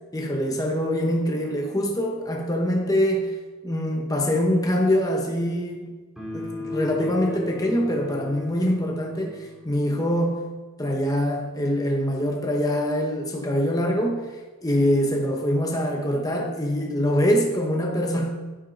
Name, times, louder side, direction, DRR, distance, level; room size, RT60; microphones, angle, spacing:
voice 1, 0.1-3.4 3.6-6.0 6.3-10.5 10.8-18.3, equal, 15° left, 1 dB, 0.9 m, -24 dB
sound 1, 6.2-9.7, left 3 dB, ahead, 3.5 m, -35 dB
10.0 x 9.8 x 4.1 m, 1.3 s
head